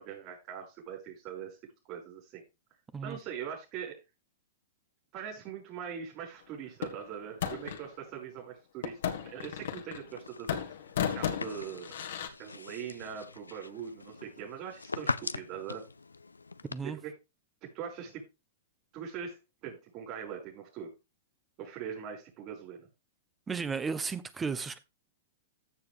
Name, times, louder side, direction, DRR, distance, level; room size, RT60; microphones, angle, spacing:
voice 1, 0.0-1.6 1.8-2.4 3.0-4.0 5.1-10.6 11.1-12.0 12.4-15.8 16.8-17.1 17.7-18.2 18.9-20.9 21.6-22.9, right 8 dB, 40° right, 5.4 m, -42 dB
sound 1, 6.8-7.9 8.8-10.2 10.5-12.3, left 9 dB, 65° left, 1.7 m, -35 dB
sound 2, 10.1-16.8, left 4 dB, 90° left, 0.6 m, -41 dB
voice 2, 23.5-24.8, right 5 dB, 15° right, 1.0 m, -34 dB
14.5 x 6.8 x 3.5 m
hypercardioid pair, 105°, 0 cm